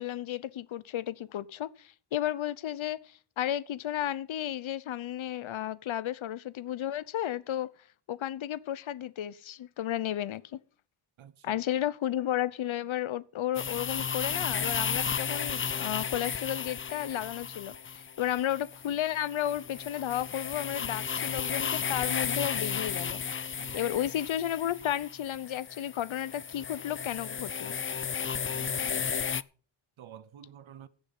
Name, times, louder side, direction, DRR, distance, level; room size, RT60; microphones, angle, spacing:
voice 1, 0.0-7.7 8.1-10.6 11.4-23.2 23.7-27.7, left 12 dB, 75° left, 0.9 m, -33 dB
voice 2, 11.2-11.6 23.6-23.8 28.5-29.2 30.0-30.9, right 10 dB, 75° right, 0.9 m, -50 dB
sound 1, 13.5-29.4, left 6 dB, 25° left, 0.5 m, -34 dB
16.5 x 7.0 x 5.5 m
cardioid pair, 85°, 48 cm